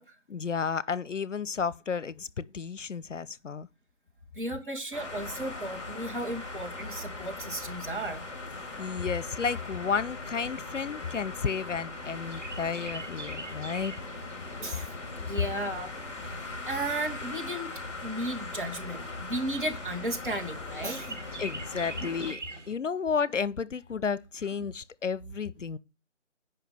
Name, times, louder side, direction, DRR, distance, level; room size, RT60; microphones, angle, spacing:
voice 1, 0.3-3.7 8.6-13.9 21.4-22.4 22.7-25.8, left 6 dB, 75° left, 0.7 m, -32 dB
voice 2, 4.3-8.2 14.6-14.9 15.2-15.9 16.2-17.7 18.0-21.2 22.0-22.1, right 1 dB, 45° right, 2.3 m, -34 dB
sound 1, 4.9-22.3, left 3 dB, 25° left, 2.2 m, -40 dB
Chirp tweet, 11.9-22.7, right 3 dB, 70° right, 2.6 m, -46 dB
9.2 x 5.7 x 6.7 m
figure-of-eight pair, 165°, 37 cm